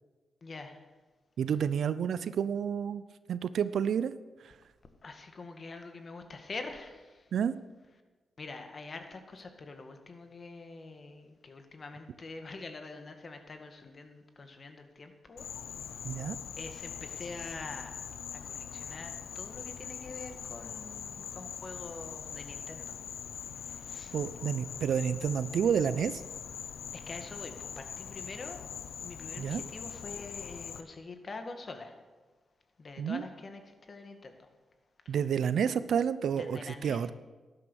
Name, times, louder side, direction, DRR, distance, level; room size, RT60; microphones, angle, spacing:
voice 1, 0.4-0.8 5.0-7.3 8.4-15.5 16.6-23.0 23.6-24.1 26.9-28.6 29.0-32.0 32.8-34.5 35.1-35.2 36.4-37.0, left 3 dB, 50° left, 6 dB, 1.9 m, -45 dB
voice 2, 1.4-3.0 3.3-4.1 7.3-7.5 16.0-16.4 24.1-26.2 29.4-29.6 33.0-33.2 35.1-37.1, right 8 dB, 80° right, 15 dB, 0.5 m, -30 dB
Insect, 15.4-30.8, left 8 dB, 80° left, 0.7 m, -42 dB
12.5 x 10.5 x 6.4 m, 1.3 s
supercardioid pair, 50°, 0 cm